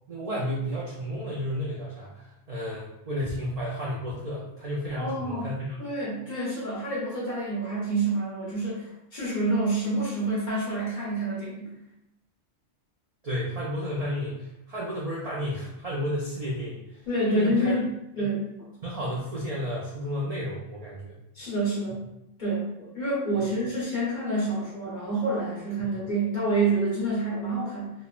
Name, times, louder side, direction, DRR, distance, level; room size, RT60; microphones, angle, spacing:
voice 1, 0.1-5.7 13.2-17.8 18.2-18.3 18.8-21.2 23.4-23.5, equal, 75° right, -6 dB, 0.3 m, -32 dB
voice 2, 5.0-5.5 5.8-11.7 17.1-17.9 18.1-18.4 21.3-22.0 22.4-27.9, right 2 dB, 40° left, -9 dB, 1.2 m, -28 dB
3.1 x 2.0 x 2.3 m, 0.86 s
omnidirectional pair, 1.2 m